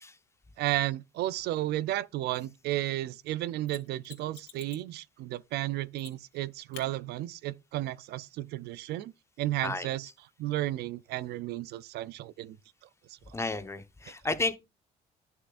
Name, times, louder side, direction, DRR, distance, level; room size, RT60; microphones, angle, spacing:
voice 1, 0.6-9.1 9.4-10.1 10.4-12.6, right 15 dB, 75° right, 0.5 m, -33 dB
Mechanisms, 3.7-4.9 6.0-6.4 6.7-6.9 9.6-9.7, left 10 dB, 85° left, 2.5 m, -49 dB
voice 2, 13.3-14.5, left 3 dB, 15° left, 1.1 m, -32 dB
11.5 x 6.8 x 2.5 m
cardioid pair, 110°, 17 cm